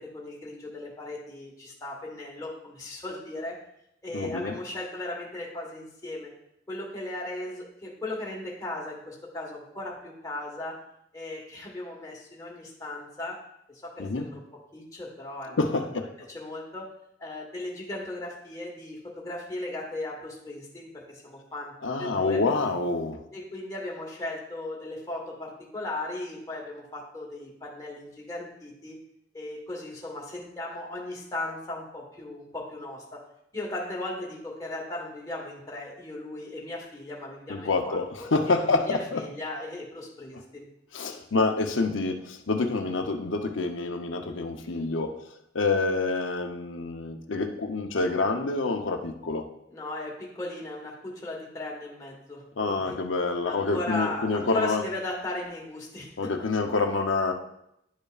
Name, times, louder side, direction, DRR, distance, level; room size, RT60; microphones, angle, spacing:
voice 1, 0.0-3.7 4.0-6.3 6.7-10.8 11.1-14.4 14.7-15.6 16.2-22.4 23.3-29.0 29.3-33.3 33.5-40.7 49.7-53.0 53.4-56.3, left 2 dB, 20° left, -2 dB, 1.4 m, -37 dB
voice 2, 4.1-4.5 14.0-14.3 15.6-16.1 21.8-23.2 37.5-39.2 40.9-45.1 45.5-49.5 52.6-54.8 56.2-57.3, left 3 dB, 85° left, 5 dB, 0.8 m, -27 dB
11.0 x 5.3 x 2.4 m, 0.79 s
head